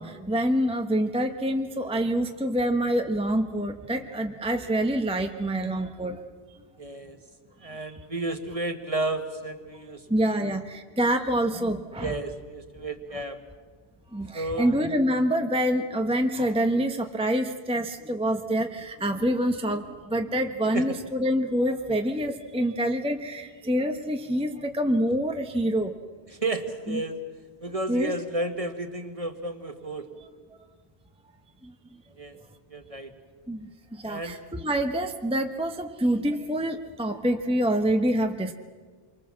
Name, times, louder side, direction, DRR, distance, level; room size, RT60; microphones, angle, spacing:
voice 1, 0.0-6.2 7.7-7.9 10.1-12.2 14.1-25.9 26.9-27.0 27.9-28.1 31.6-31.7 33.5-38.5, right 1 dB, 5° right, 5 dB, 1.0 m, -26 dB
voice 2, 6.8-7.2 7.6-10.5 12.0-13.4 14.3-14.7 20.7-21.0 26.3-27.2 27.6-30.1 32.2-32.4 32.7-33.1 34.0-34.4, right 2 dB, 35° right, 7 dB, 1.7 m, -32 dB
28.0 x 24.0 x 7.4 m, 1.5 s
omnidirectional pair, 1.1 m